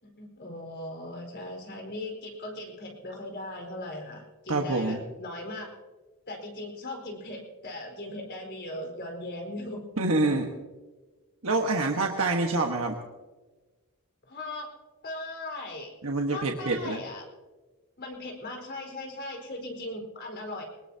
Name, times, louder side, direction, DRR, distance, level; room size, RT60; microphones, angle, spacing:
voice 1, 0.0-5.7 6.3-9.8 14.3-14.7 15.0-15.9 16.3-17.3 18.0-20.6, left 1 dB, 50° left, 1 dB, 4.5 m, -39 dB
voice 2, 4.5-5.0 10.0-10.5 11.4-12.9 16.0-17.0, right 2 dB, 65° right, 1 dB, 1.4 m, -26 dB
23.5 x 20.5 x 2.9 m, 1.3 s
head